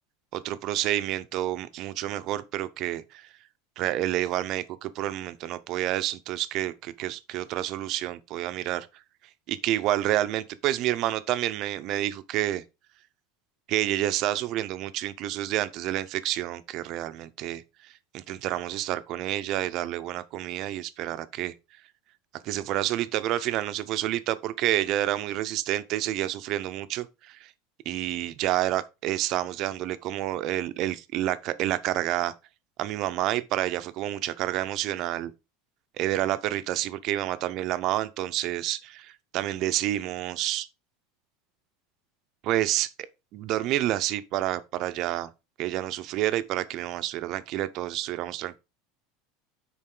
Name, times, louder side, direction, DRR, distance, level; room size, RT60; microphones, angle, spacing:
voice 1, 0.3-3.3 3.8-8.9 9.5-12.6 13.7-21.5 22.4-27.5 27.8-32.3 32.8-35.3 36.0-40.7 42.4-42.9 43.3-45.3 45.6-48.6, right 14 dB, 45° right, 0.7 m, -29 dB
9.9 x 4.2 x 3.8 m
supercardioid pair, 155°, 0 cm